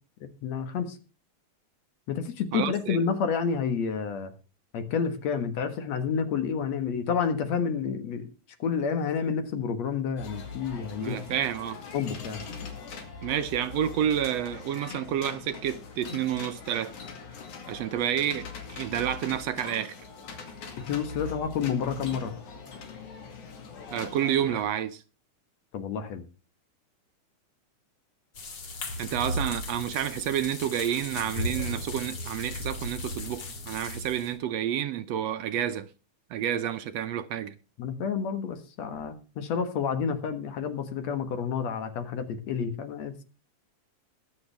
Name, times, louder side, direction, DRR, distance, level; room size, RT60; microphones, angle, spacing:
voice 1, 0.4-1.0 2.1-4.3 4.7-8.3 8.6-11.2 11.9-12.4 20.9-22.3 25.7-26.2 37.8-43.2, left 6 dB, 65° left, 2.6 m, -29 dB
voice 2, 2.5-3.0 11.0-11.8 13.2-16.9 17.7-20.0 23.9-25.0 29.0-35.9 36.3-37.5, right 10 dB, 75° right, 1.7 m, -29 dB
sound 1, 10.2-24.6, left 5 dB, 85° left, 3.6 m, -42 dB
sound 2, 28.3-34.3, left 1 dB, 40° left, 2.3 m, -36 dB
22.0 x 7.3 x 3.4 m
omnidirectional pair, 3.3 m